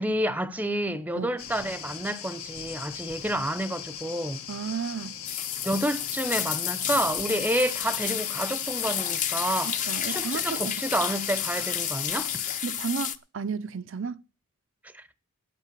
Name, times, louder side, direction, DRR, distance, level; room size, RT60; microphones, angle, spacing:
voice 1, 0.0-4.4 5.6-9.8 10.1-12.3 14.9-15.1, right 1 dB, 5° right, 0.6 m, -29 dB
sound 1, 1.4-12.6, left 9 dB, 80° left, 1.5 m, -40 dB
voice 2, 4.5-5.1 9.6-10.8 12.6-14.2, right 5 dB, 60° right, 0.5 m, -33 dB
sound 2, 5.3-13.2, left 9 dB, 35° left, 0.7 m, -31 dB
9.0 x 8.5 x 8.3 m
head